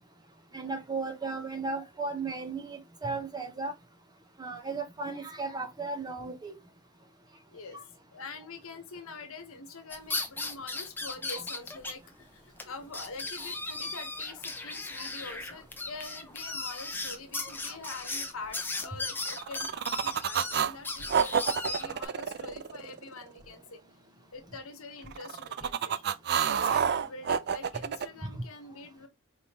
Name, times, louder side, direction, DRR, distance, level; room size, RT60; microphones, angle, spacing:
voice 1, 0.5-3.7 4.4-6.6 11.3-11.4 15.0-15.1 28.3-28.4, right 3 dB, 20° right, 0.9 m, -35 dB
voice 2, 7.5-23.8 24.3-26.1 26.4-29.1, left 3 dB, 65° left, 1.1 m, -45 dB
sound 1, 9.9-11.9 12.2-12.3 12.6-12.7 12.9-22.0, left 3 dB, 10° left, 0.7 m, -36 dB
sound 2, 19.2-20.7 21.1-23.3 25.1-28.1, right 7 dB, 50° right, 0.4 m, -29 dB
4.4 x 3.5 x 2.9 m
head